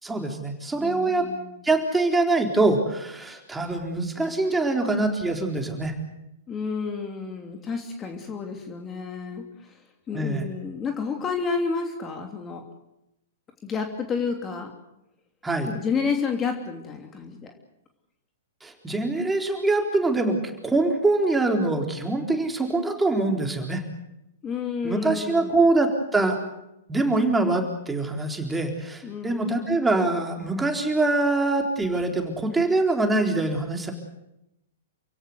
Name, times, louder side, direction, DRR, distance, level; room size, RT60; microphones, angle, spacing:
voice 1, 0.0-1.3 1.6-5.9 10.1-10.5 15.4-15.7 18.6-23.8 24.8-26.4 26.9-33.9, right 2 dB, 10° right, 3 dB, 4.0 m, -24 dB
voice 2, 0.8-1.6 6.5-12.6 13.6-14.7 15.7-17.5 24.4-25.6 29.0-29.6, left 5 dB, 20° left, 4 dB, 3.0 m, -30 dB
28.5 x 17.0 x 8.1 m, 0.86 s
figure-of-eight pair, 110°, 0 cm